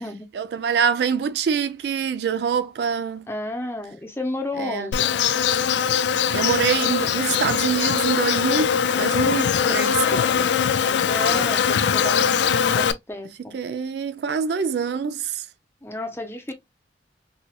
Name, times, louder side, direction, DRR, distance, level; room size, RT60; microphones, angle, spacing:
voice 1, 0.3-3.3 4.6-4.9 6.3-10.5 13.5-15.5, right 6 dB, 65° right, 0.3 m, -25 dB
voice 2, 3.3-5.2 11.0-12.3 12.7-13.5 15.8-16.5, left 2 dB, 15° left, 0.7 m, -32 dB
Insect, 4.9-12.9, left 7 dB, 75° left, 0.4 m, -21 dB
4.3 x 2.3 x 2.3 m
head